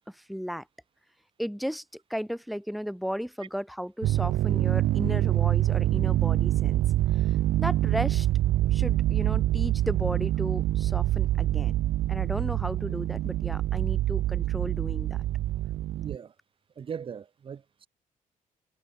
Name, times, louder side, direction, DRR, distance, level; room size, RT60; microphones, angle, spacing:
voice 1, 0.1-0.6 1.4-1.8 2.1-6.8 7.6-8.3 8.7-11.8 12.1-15.2, equal, ahead, 4.0 m, -34 dB
sound 1, 4.0-16.2, right 14 dB, 75° right, 0.5 m, -25 dB
voice 2, 15.9-16.3 16.8-17.9, right 7 dB, 35° right, 2.8 m, -39 dB
cardioid pair, 170°, 15 cm